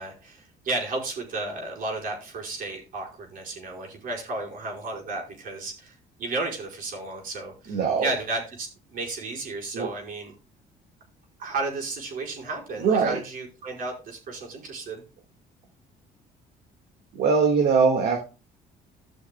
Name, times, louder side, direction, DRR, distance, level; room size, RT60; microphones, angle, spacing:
voice 1, 0.0-10.3 11.4-15.0, right 3 dB, 55° right, 0 dB, 4.8 m, -33 dB
voice 2, 7.7-8.1 9.7-9.9 12.8-13.2 17.1-18.2, right 5 dB, 70° right, 2 dB, 1.8 m, -21 dB
17.0 x 6.4 x 2.2 m, 0.32 s
cardioid pair, 110°, 17 cm